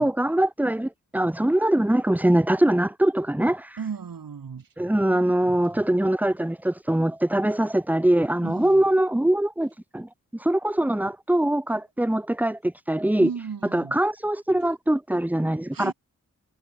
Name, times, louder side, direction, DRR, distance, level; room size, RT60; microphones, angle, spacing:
voice 1, 0.0-3.8 4.8-10.1 10.4-13.3 13.7-15.9, right 1 dB, 5° right, 0.8 m, -23 dB
voice 2, 3.8-4.7 8.4-8.9 13.2-14.0 15.7-15.9, right 6 dB, 85° right, 2.1 m, -35 dB
cardioid pair, 40°, 33 cm